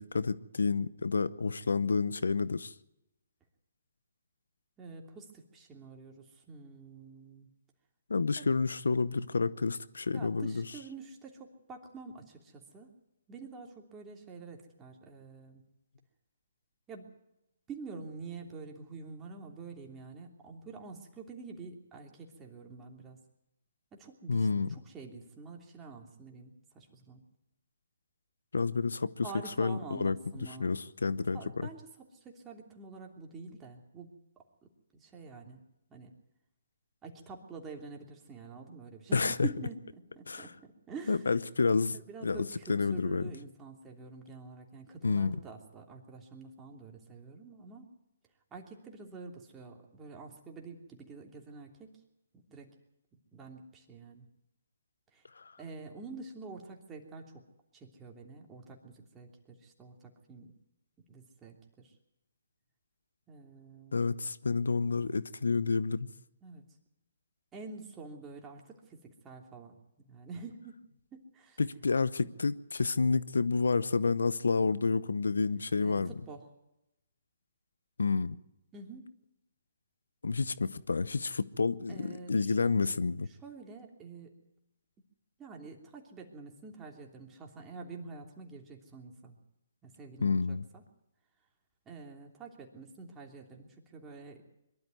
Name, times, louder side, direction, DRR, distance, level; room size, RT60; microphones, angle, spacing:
voice 1, 0.0-2.7 8.1-10.6 24.3-24.7 28.5-29.3 29.6-30.2 30.6-31.7 39.1-39.3 40.3-40.5 41.1-42.0 42.2-43.2 45.0-45.4 55.4-55.5 63.9-66.1 71.6-76.1 78.0-78.4 80.2-83.3 90.2-90.6, left 4 dB, 85° left, 0.8 m, -29 dB
voice 2, 4.8-7.5 8.4-8.5 10.1-12.9 13.3-15.6 16.9-17.1 17.7-23.2 23.9-27.3 29.2-30.8 31.3-34.2 34.9-35.6 35.9-36.1 37.0-39.8 40.1-41.4 41.9-47.9 48.5-51.9 52.3-52.7 53.3-54.3 55.1-55.2 55.6-57.4 57.7-60.5 61.1-62.0 63.3-64.0 66.4-66.6 67.5-70.7 71.1-71.6 75.8-76.5 78.7-79.1 81.9-84.3 85.4-89.4 89.8-90.8 91.8-94.4, right 4 dB, 15° right, 3.1 m, -47 dB
22.5 x 12.5 x 9.3 m
hypercardioid pair, 145°, 0 cm